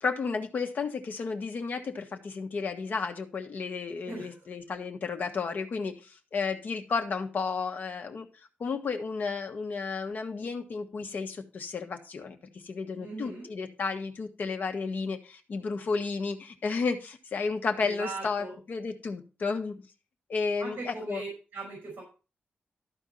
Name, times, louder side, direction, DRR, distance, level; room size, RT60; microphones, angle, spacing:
voice 1, 0.0-8.3 8.6-12.4 12.6-19.7 20.3-21.2, left 4 dB, 55° left, 5 dB, 1.4 m, -32 dB
voice 2, 4.1-4.5 13.0-13.5 17.8-18.5 20.6-22.0, right 3 dB, 55° right, 0 dB, 5.1 m, -39 dB
13.0 x 4.5 x 5.5 m, 0.33 s
wide cardioid pair, 170°, 4 cm